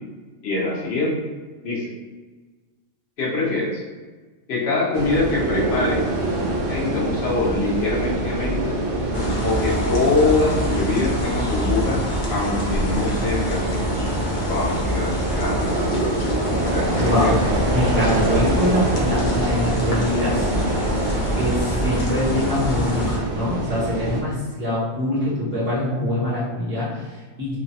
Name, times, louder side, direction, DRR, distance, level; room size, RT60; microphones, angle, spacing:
voice 1, 0.4-1.3 1.6-1.9 3.2-3.8 4.5-6.1 6.7-8.8 9.4-12.0 12.3-13.9 14.5-15.6 16.6-17.3, left 3 dB, 55° left, -5 dB, 0.9 m, -24 dB
sound 1, 4.9-24.2, right 1 dB, 80° right, 0.4 m, -25 dB
sound 2, 9.1-23.2, left 1 dB, 85° left, 0.4 m, -26 dB
voice 2, 17.0-17.3 17.7-20.5 21.3-27.6, left 1 dB, 15° right, -10 dB, 0.5 m, -24 dB
3.1 x 2.1 x 2.7 m, 1.3 s
omnidirectional pair, 1.5 m